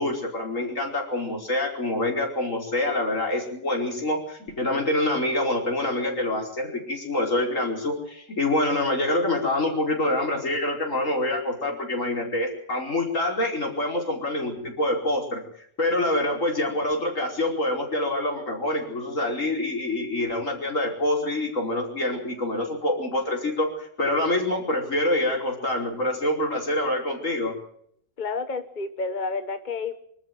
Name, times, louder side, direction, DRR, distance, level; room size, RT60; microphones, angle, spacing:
voice 1, 0.0-15.4 15.8-27.6, left 1 dB, 80° left, 0 dB, 5.3 m, -26 dB
voice 2, 28.2-30.0, left 4 dB, 40° left, 9 dB, 1.4 m, -30 dB
25.5 x 13.0 x 9.3 m, 0.70 s
omnidirectional pair, 1.3 m